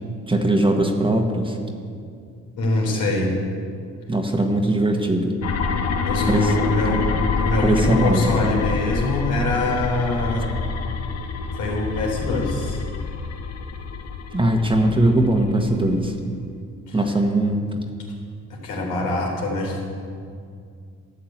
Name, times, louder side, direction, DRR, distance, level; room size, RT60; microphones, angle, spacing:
voice 1, 0.3-1.6 4.1-5.3 6.3-6.5 7.6-8.6 14.3-16.1 16.9-17.8, right 1 dB, 15° right, 3 dB, 1.4 m, -20 dB
voice 2, 2.6-3.3 6.1-10.5 11.5-12.8 16.9-17.0 18.6-19.8, left 2 dB, 85° left, -2 dB, 3.8 m, -24 dB
sound 1, 5.4-16.1, left 5 dB, 55° left, 1.1 m, -27 dB
13.0 x 6.7 x 9.3 m, 2.3 s
cardioid pair, 90°, 30 cm